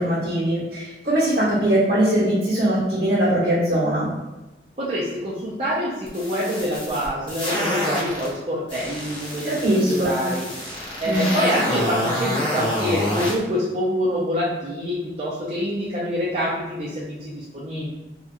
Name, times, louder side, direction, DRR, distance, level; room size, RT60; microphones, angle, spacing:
voice 1, 0.0-4.1 9.4-10.2 11.0-11.3, right 1 dB, 65° right, -7 dB, 1.3 m, -21 dB
voice 2, 4.8-17.9, equal, 35° right, -7 dB, 0.4 m, -26 dB
sound 1, 6.1-8.3 8.7-13.3, left 1 dB, 30° left, 0.6 m, -27 dB
2.8 x 2.2 x 2.4 m, 1.0 s
head